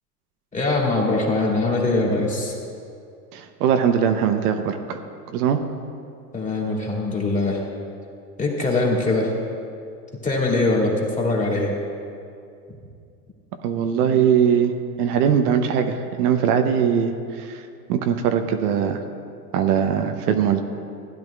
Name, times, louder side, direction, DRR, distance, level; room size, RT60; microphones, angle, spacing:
voice 1, 0.5-2.5 6.3-7.6 8.4-9.3 10.2-11.8, left 2 dB, 15° left, -3 dB, 2.3 m, -22 dB
voice 2, 3.3-5.0 5.3-5.6 13.6-14.7 15.0-17.1 17.4-17.5 17.9-19.0 19.5-20.6, right 8 dB, 70° right, 6 dB, 0.9 m, -20 dB
15.5 x 10.5 x 2.4 m, 2.4 s
hypercardioid pair, 95°, 49 cm